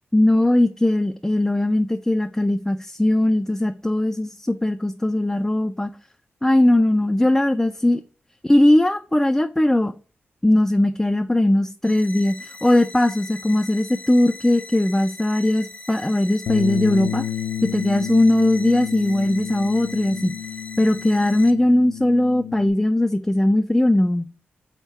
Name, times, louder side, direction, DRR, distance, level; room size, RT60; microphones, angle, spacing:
voice 1, 0.1-5.9 6.4-8.0 8.5-9.9 10.4-17.2 17.6-20.3 20.8-24.3, left 1 dB, 10° left, 0.3 m, -19 dB
sound 1, 11.8-21.5, left 3 dB, 35° left, 0.7 m, -40 dB
Bass guitar, 16.5-22.7, left 11 dB, 85° left, 0.3 m, -30 dB
3.6 x 3.6 x 4.1 m
cardioid pair, 70°, 4 cm